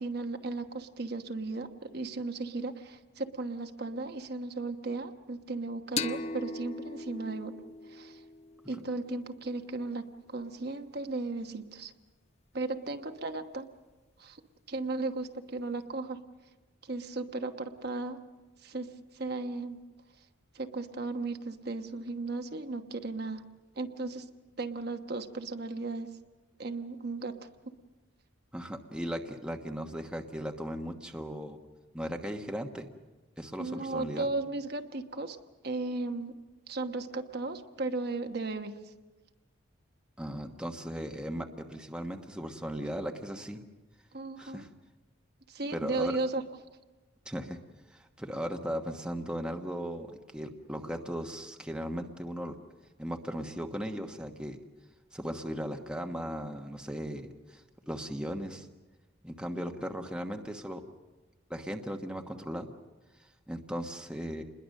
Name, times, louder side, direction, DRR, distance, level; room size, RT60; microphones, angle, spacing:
voice 1, 0.0-7.6 7.9-8.2 8.7-11.9 12.5-13.7 14.2-14.4 14.7-16.2 16.8-18.2 18.6-18.9 19.1-19.8 20.5-23.4 23.8-24.2 24.6-26.1 26.6-27.3 33.6-35.4 35.6-36.3 36.7-38.7 44.1-44.7 45.5-46.4, right 3 dB, 50° right, 5 dB, 1.2 m, -35 dB
sound 1, 6.0-9.3, left 4 dB, 35° left, 0.7 m, -39 dB
voice 2, 28.5-31.6 31.9-32.9 33.4-34.3 40.2-43.6 44.4-44.7 45.7-46.2 47.2-47.6 47.9-52.6 53.0-54.6 55.1-58.7 59.2-60.8 61.5-62.7 63.2-64.4, equal, 5° right, 3 dB, 1.2 m, -37 dB
28.0 x 21.0 x 6.5 m, 1.2 s
head